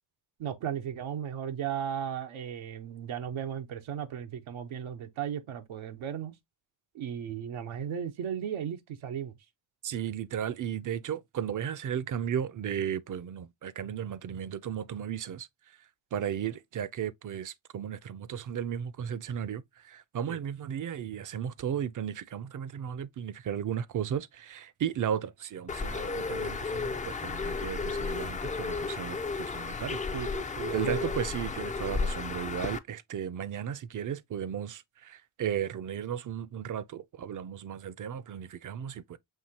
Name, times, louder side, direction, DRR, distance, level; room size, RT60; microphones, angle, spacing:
voice 1, 0.4-6.4 6.9-9.3 20.3-20.4 30.1-31.2, right 9 dB, 90° right, 0.8 m, -36 dB
voice 2, 9.8-15.5 16.1-30.0 30.7-39.2, right 9 dB, 45° right, 0.5 m, -35 dB
Bird, 25.7-32.8, left 4 dB, 20° left, 0.3 m, -33 dB
5.6 x 2.7 x 2.7 m
cardioid pair, 70°, 46 cm